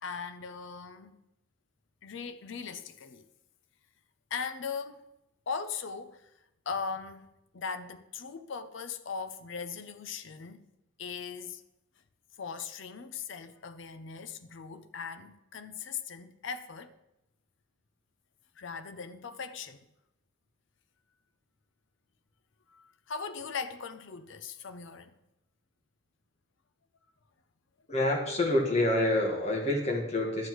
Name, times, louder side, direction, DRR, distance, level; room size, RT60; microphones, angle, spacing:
voice 1, 0.0-1.2 2.0-3.3 4.3-5.0 5.5-6.3 6.7-7.3 7.5-10.6 11.0-11.6 12.4-17.0 18.6-19.8 22.7-25.1, left 5 dB, 65° left, 0.5 m, -39 dB
voice 2, 27.9-30.5, left 1 dB, 30° left, 1.6 m, -27 dB
11.5 x 8.0 x 3.1 m
head